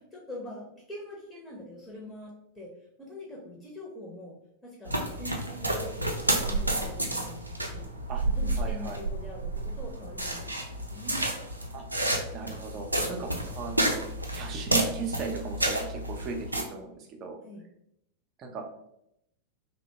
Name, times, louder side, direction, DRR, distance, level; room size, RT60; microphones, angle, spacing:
voice 1, 0.1-2.7 3.0-4.3 4.6-7.9 8.3-11.3 17.4-17.6, left 1 dB, 10° left, -3 dB, 0.7 m, -43 dB
sound 1, 4.8-16.6, right 1 dB, 85° right, 0.4 m, -30 dB
voice 2, 8.6-9.0 11.7-11.8 12.3-13.3 13.5-14.0 14.3-17.4 18.4-18.6, right 5 dB, 35° right, 3 dB, 0.5 m, -37 dB
2.8 x 2.1 x 2.7 m, 0.77 s
figure-of-eight pair, 90°, 0 cm